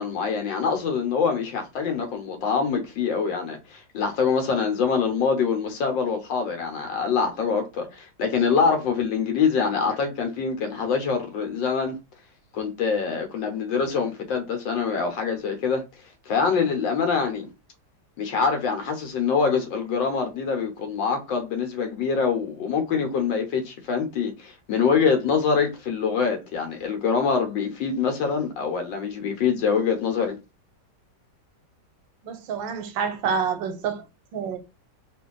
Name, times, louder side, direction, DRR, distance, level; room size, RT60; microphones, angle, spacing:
voice 1, 0.0-11.9 12.5-15.8 16.3-17.5 18.2-30.4, left 5 dB, 80° left, 1.6 m, -25 dB
voice 2, 32.2-34.0 34.3-34.6, right 6 dB, 90° right, 1.4 m, -27 dB
3.3 x 2.5 x 3.7 m
omnidirectional pair, 2.0 m